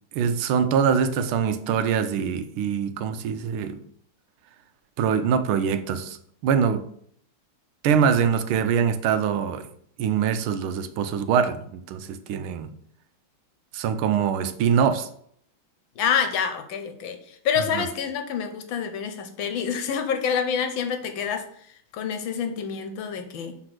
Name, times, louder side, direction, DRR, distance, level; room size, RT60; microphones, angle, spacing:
voice 1, 0.1-3.8 5.0-6.2 6.4-6.9 7.8-9.7 10.0-12.7 13.7-15.1 17.7-17.9, right 7 dB, 85° right, 1.5 m, -23 dB
voice 2, 16.0-21.4 21.9-23.5, left 7 dB, 75° left, 1.5 m, -27 dB
5.9 x 3.8 x 4.8 m
omnidirectional pair, 2.3 m